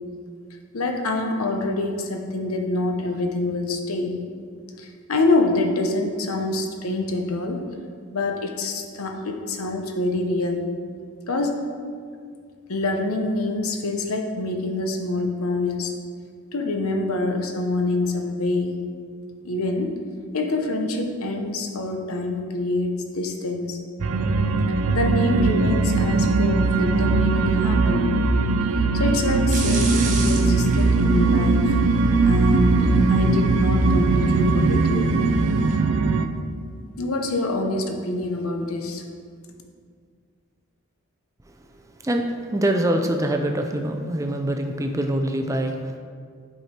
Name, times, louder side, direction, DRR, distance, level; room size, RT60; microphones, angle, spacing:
voice 1, 0.7-4.2 4.8-7.7 8.1-10.6 11.3-11.6 12.7-15.9 16.5-18.9 19.4-19.9 20.3-23.8 24.9-28.2 28.9-31.7 32.2-35.1 37.0-39.0, left 2 dB, 85° left, 4 dB, 0.8 m, -26 dB
sound 1, 24.0-36.3, right 3 dB, 75° right, 0.4 m, -20 dB
sound 2, 29.5-35.7, right 3 dB, 35° right, 0.9 m, -36 dB
voice 2, 42.5-46.0, right 1 dB, 15° right, 4 dB, 0.4 m, -24 dB
7.9 x 4.9 x 4.3 m, 2.1 s
head